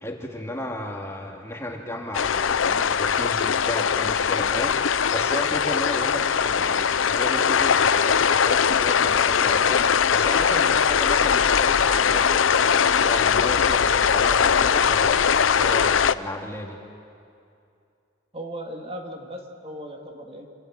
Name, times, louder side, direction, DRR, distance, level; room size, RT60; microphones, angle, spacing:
voice 1, 0.0-4.8 5.1-16.8, left 1 dB, 15° left, 0 dB, 2.4 m, -34 dB
sound 1, 2.1-16.1, left 7 dB, 85° left, 0.6 m, -21 dB
voice 2, 18.3-20.5, equal, 30° right, 2 dB, 2.3 m, -37 dB
28.0 x 27.0 x 7.6 m, 2.5 s
head